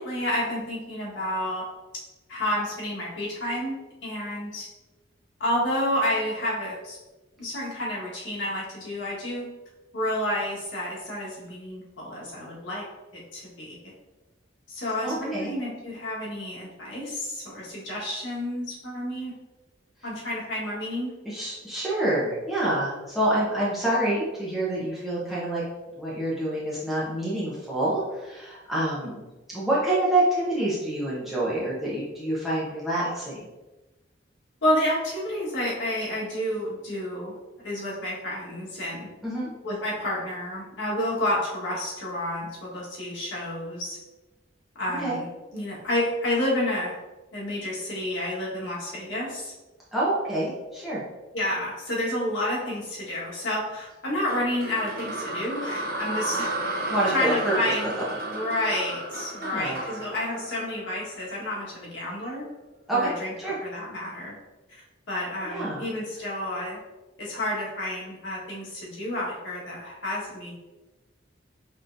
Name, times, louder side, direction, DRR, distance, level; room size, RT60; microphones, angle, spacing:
voice 1, 0.0-1.7 2.3-3.7 4.0-4.7 5.4-7.0 7.4-9.5 9.9-12.8 13.1-13.8 14.7-19.3 20.0-21.1 29.0-29.1 34.6-37.3 37.6-39.1 39.6-44.0 44.8-45.3 45.5-47.0 47.3-49.5 51.3-56.5 57.1-57.9 58.2-62.5 62.9-63.3 63.6-64.3 65.1-66.8 67.2-70.5, left 1 dB, 75° left, -5 dB, 1.5 m, -30 dB
voice 2, 15.0-15.5 21.2-25.6 26.0-33.4 39.2-39.5 44.9-45.2 49.9-51.0 56.9-57.5 58.0-58.1 59.4-59.8 62.9-63.1 63.4-63.6 65.4-65.9, right 1 dB, ahead, -8 dB, 0.9 m, -27 dB
sound 1, 54.3-61.5, right 1 dB, 50° right, 0.6 m, -33 dB
5.5 x 3.1 x 2.6 m, 1.1 s
head